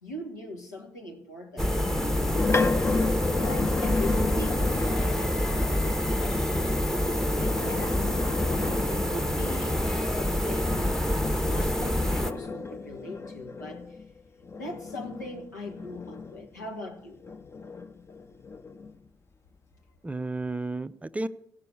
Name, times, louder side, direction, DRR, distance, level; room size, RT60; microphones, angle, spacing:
voice 1, 0.0-2.3 3.2-6.7 6.9-8.2 8.9-10.9 11.4-14.0 14.6-17.2, left 2 dB, 85° left, 1.5 m, -41 dB
sound 1, 1.6-12.3, left 1 dB, 5° left, 1.0 m, -27 dB
sound 2, 1.9-5.2 7.2-9.5 11.5-16.7 17.2-19.0, left 4 dB, 30° left, 0.8 m, -33 dB
voice 2, 8.5-8.9 20.0-21.3, right 2 dB, 15° right, 0.5 m, -33 dB
16.0 x 6.9 x 7.9 m
figure-of-eight pair, 45°, 9 cm